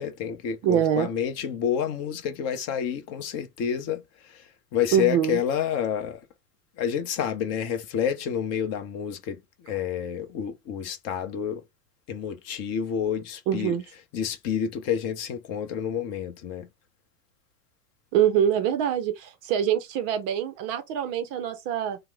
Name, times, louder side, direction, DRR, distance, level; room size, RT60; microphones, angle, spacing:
voice 1, 0.0-4.0 4.3-4.4 4.7-6.2 6.8-9.4 9.6-11.6 12.1-13.7 14.1-16.7, left 8 dB, 35° left, 0.6 m, -29 dB
voice 2, 0.6-1.1 4.9-5.4 13.5-13.8 18.1-22.0, right 10 dB, 35° right, 0.5 m, -24 dB
2.9 x 2.0 x 3.3 m
hypercardioid pair, 100°, 47 cm